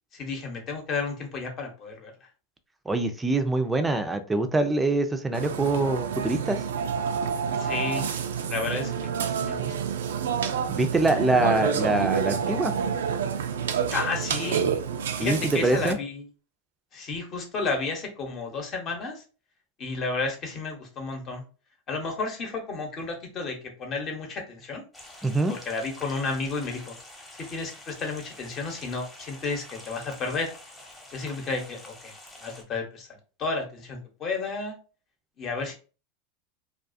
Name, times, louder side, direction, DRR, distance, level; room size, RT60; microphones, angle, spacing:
voice 1, 0.1-2.3 7.6-8.1 8.5-8.9 9.4-9.7 13.9-14.6 15.2-16.3 16.9-19.2 19.8-21.4 21.9-24.8 25.5-27.0 27.5-30.5 31.1-32.1 32.4-33.1 33.4-34.8 35.4-35.7, left 4 dB, 40° left, 3 dB, 0.9 m, -32 dB
voice 2, 2.9-6.6 10.7-12.7 15.2-16.0 25.2-25.5, right 2 dB, 10° right, 7 dB, 0.4 m, -24 dB
Burping eructation, 5.3-15.9, right 7 dB, 85° right, 0.3 m, -28 dB
sound 1, 24.9-32.6, left 1 dB, 10° left, 0.9 m, -47 dB
2.3 x 2.3 x 2.5 m, 0.35 s
hypercardioid pair, 110°, 0 cm